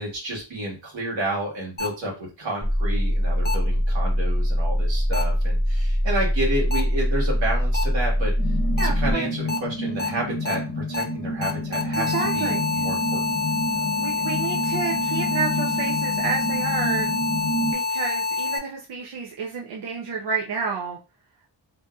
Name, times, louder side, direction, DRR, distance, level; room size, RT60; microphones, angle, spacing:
voice 1, 0.0-2.1 2.4-8.3 8.8-13.4 13.8-13.9, right 1 dB, 85° right, -3 dB, 1.4 m, -30 dB
sound 1, 1.8-1.9 3.4-3.5 5.1-5.2 6.7-6.8 7.7-7.8 8.8-8.9 9.5-9.6 10.0-10.1 10.4-10.5 10.9-11.0 11.4-18.6, left 4 dB, 25° left, 0.4 m, -26 dB
sound 2, 2.6-9.1, equal, 10° right, 0.9 m, -22 dB
sound 3, 8.4-17.7, left 1 dB, 65° left, 0.7 m, -29 dB
voice 2, 8.8-9.3 11.9-12.8 14.0-17.1 17.7-21.0, right 5 dB, 65° right, -2 dB, 0.6 m, -30 dB
2.7 x 2.6 x 2.2 m, 0.30 s
wide cardioid pair, 125°, 44 cm